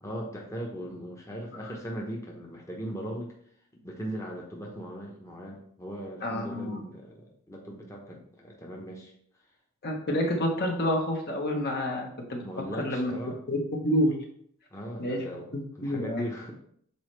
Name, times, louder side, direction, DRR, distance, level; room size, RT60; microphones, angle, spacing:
voice 1, 0.0-3.3 3.7-9.1 12.4-13.4 14.7-16.5, equal, 15° left, -2 dB, 0.9 m, -38 dB
voice 2, 6.2-6.8 9.8-12.4 12.8-13.1 13.5-14.1 15.0-15.2 15.5-16.2, equal, 50° left, 2 dB, 1.0 m, -28 dB
7.0 x 4.1 x 3.2 m, 0.65 s
head